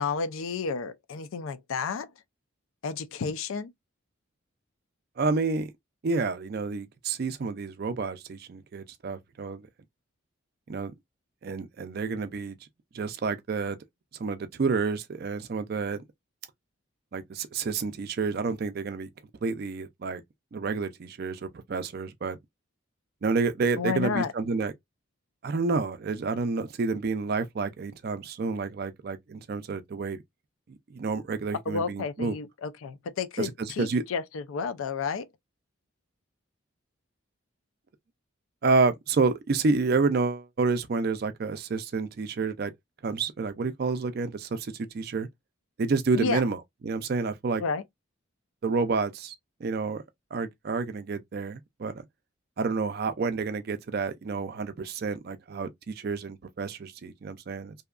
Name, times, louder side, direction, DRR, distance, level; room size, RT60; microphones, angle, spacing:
voice 1, 0.0-2.1 2.8-3.7 23.8-24.3 31.7-35.3 46.2-46.4 47.6-47.8, left 5 dB, 75° left, 0.4 m, -31 dB
voice 2, 5.2-5.7 6.0-9.7 10.7-10.9 11.4-12.6 12.9-13.8 14.2-16.0 17.1-19.1 19.4-20.2 20.5-22.4 23.2-24.7 25.4-30.2 30.9-32.3 33.4-34.0 38.6-42.7 43.0-45.3 45.8-46.6 46.8-47.6 48.6-49.3 49.6-50.0 50.3-51.9 52.6-57.8, right 4 dB, 45° right, 0.4 m, -29 dB
2.7 x 2.2 x 2.3 m
head